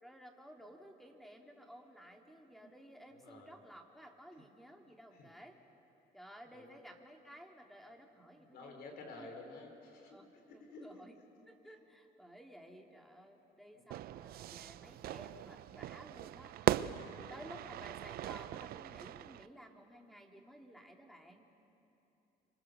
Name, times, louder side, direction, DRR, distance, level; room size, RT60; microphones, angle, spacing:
voice 1, 0.0-5.6 6.1-9.3 10.1-11.2 11.5-21.5, equal, ahead, 2 dB, 2.3 m, -55 dB
voice 2, 3.1-3.6 4.4-4.5 5.1-5.3 6.5-6.8 8.3-11.1 12.7-12.8 13.7-13.8 17.1-17.5, left 3 dB, 70° left, 3 dB, 3.9 m, -53 dB
Fire / Fireworks, 13.9-19.5, right 13 dB, 65° right, 0.5 m, -39 dB
25.5 x 24.5 x 6.6 m, 2.9 s
cardioid pair, 110°, 17 cm